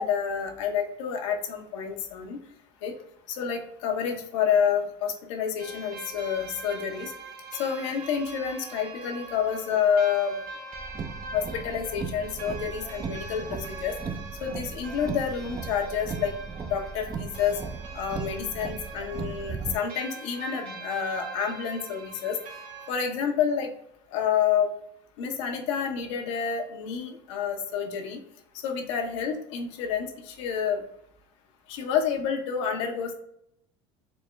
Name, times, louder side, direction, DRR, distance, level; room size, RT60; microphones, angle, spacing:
voice 1, 0.0-2.4 2.8-2.9 3.3-7.1 7.6-10.4 11.3-14.0 14.4-16.3 16.6-17.6 17.9-22.4 22.9-23.7 24.1-24.7 25.2-28.2 28.6-30.8 31.7-33.1, left 7 dB, 80° left, 3 dB, 0.8 m, -28 dB
sound 1, 5.6-22.9, right 3 dB, 60° right, 0.8 m, -43 dB
Car, 10.7-19.7, right 5 dB, 25° right, 0.4 m, -37 dB
4.2 x 2.1 x 3.3 m, 0.74 s
supercardioid pair, 90°, 16 cm